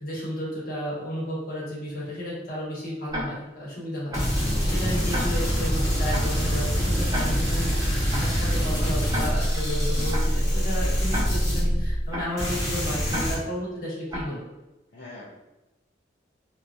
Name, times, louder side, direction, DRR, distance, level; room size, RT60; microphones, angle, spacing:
voice 1, 0.0-4.2 4.6-14.4, equal, 50° left, -6 dB, 1.1 m, -33 dB
Tick-tock, 3.1-3.2 4.1-4.2 5.1-5.2 6.1-6.2 7.1-7.2 8.1-8.2 9.1-9.2 10.1-10.2 11.1-11.2 12.1-12.2 13.1-13.2 14.1-14.2, equal, 20° right, 0.6 m, -30 dB
sound 1, 4.1-12.1 12.4-13.3, equal, 20° left, 1.0 m, -24 dB
voice 2, 4.9-5.3 14.9-15.3, left 2 dB, 65° left, -8 dB, 0.6 m, -43 dB
2.8 x 2.5 x 2.3 m, 1.0 s
head